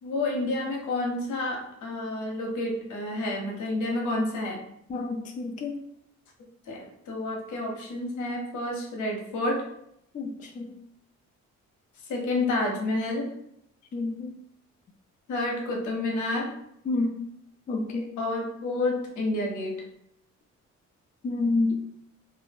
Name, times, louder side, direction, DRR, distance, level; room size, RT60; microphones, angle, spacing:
voice 1, 0.0-4.6 6.7-9.6 12.1-13.3 15.3-16.5 18.2-19.8, left 2 dB, 75° left, 0 dB, 0.8 m, -29 dB
voice 2, 4.9-5.8 10.1-10.7 13.9-14.3 16.9-17.2 17.7-18.1 21.2-21.9, left 3 dB, 25° left, 3 dB, 0.3 m, -29 dB
2.4 x 2.1 x 3.3 m, 0.75 s
cardioid pair, 90°, 30 cm